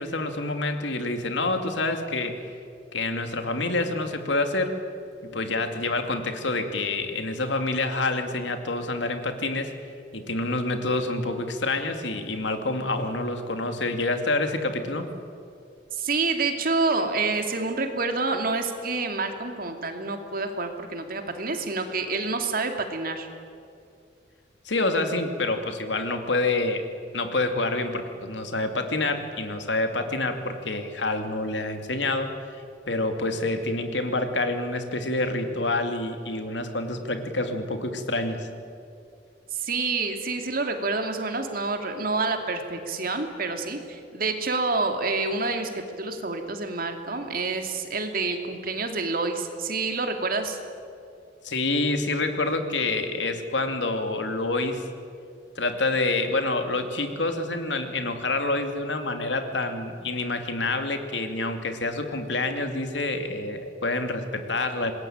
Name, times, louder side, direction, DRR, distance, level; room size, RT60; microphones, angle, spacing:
voice 1, 0.0-2.4 2.9-4.8 5.2-9.8 10.1-15.1 24.6-26.8 27.1-32.4 32.9-38.5 51.4-54.8 55.6-64.9, left 2 dB, 75° left, 6 dB, 2.6 m, -27 dB
voice 2, 15.9-23.3 39.5-50.6, right 3 dB, 50° right, 5 dB, 2.7 m, -28 dB
26.0 x 21.0 x 8.9 m, 2.5 s
head